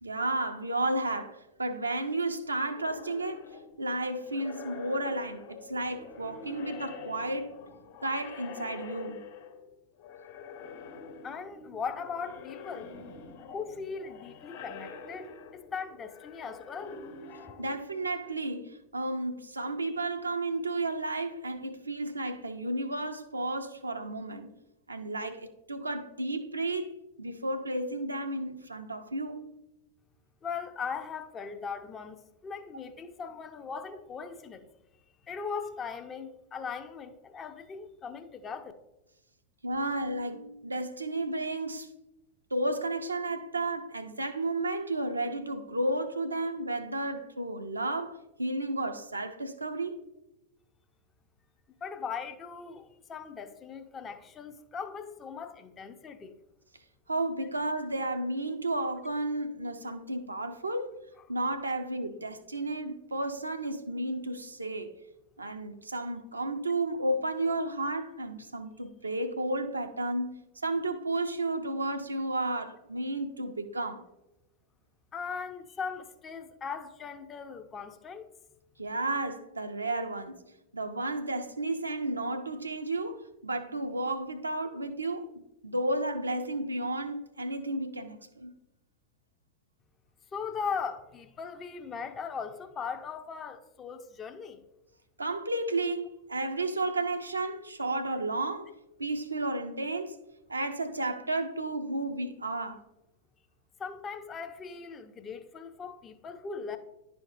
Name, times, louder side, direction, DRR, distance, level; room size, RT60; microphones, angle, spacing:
voice 1, 0.0-3.5 3.8-7.5 8.0-9.2 17.6-24.5 24.9-29.4 39.6-41.9 42.5-50.0 57.1-61.0 61.3-64.9 65.4-74.1 78.8-80.4 80.7-88.5 95.2-98.7 99.0-100.2 100.5-102.8, right 2 dB, 80° right, 0.6 m, -32 dB
sound 1, 2.7-9.7 10.0-18.3, left 5 dB, 55° left, 1.3 m, -46 dB
voice 2, 11.2-12.9 13.5-17.0 30.4-34.7 35.3-38.7 51.8-56.3 75.1-78.3 90.3-94.6 103.8-106.8, left 6 dB, 25° left, 0.6 m, -39 dB
11.0 x 4.6 x 2.6 m
figure-of-eight pair, 90°, 0 cm